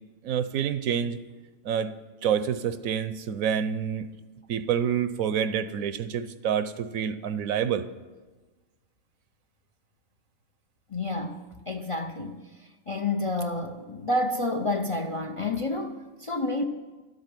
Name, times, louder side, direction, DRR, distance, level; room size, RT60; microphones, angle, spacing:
voice 1, 0.2-1.2 1.6-1.9 2.2-4.1 4.5-7.9, right 8 dB, 80° right, 1.2 m, -27 dB
voice 2, 10.9-11.4 11.7-12.5 12.9-16.6, left 2 dB, 35° left, 0.5 m, -29 dB
12.5 x 8.2 x 9.8 m
omnidirectional pair, 1.4 m